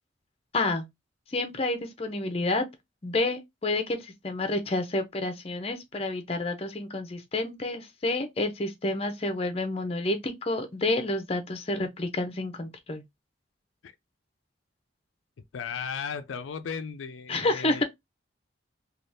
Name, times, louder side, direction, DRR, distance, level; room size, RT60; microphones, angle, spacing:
voice 1, 0.5-0.9 1.3-2.6 3.0-13.0 17.3-17.8, left 2 dB, 30° left, 0.6 m, -29 dB
voice 2, 15.5-17.8, left 6 dB, 85° left, 0.4 m, -35 dB
3.4 x 2.4 x 2.6 m
head